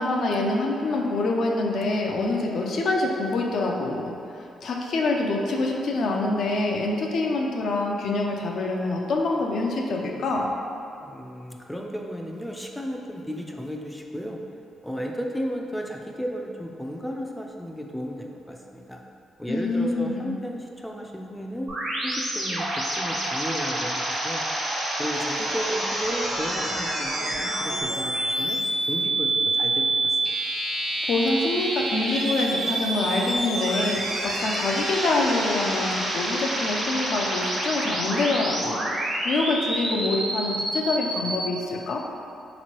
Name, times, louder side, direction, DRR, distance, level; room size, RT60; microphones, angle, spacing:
voice 1, 0.0-4.1 4.6-10.5 19.5-20.4 31.1-38.9 39.2-42.0, left 2 dB, 70° left, 0 dB, 0.4 m, -25 dB
voice 2, 11.0-14.4 14.8-19.0 19.4-21.7 22.0-24.4 25.0-28.6 28.9-30.2, equal, 5° left, 0 dB, 0.3 m, -34 dB
sound 1, 21.7-41.4, right 1 dB, 60° right, 1.0 m, -28 dB
3.5 x 3.0 x 2.9 m, 2.6 s
supercardioid pair, 65°, 0 cm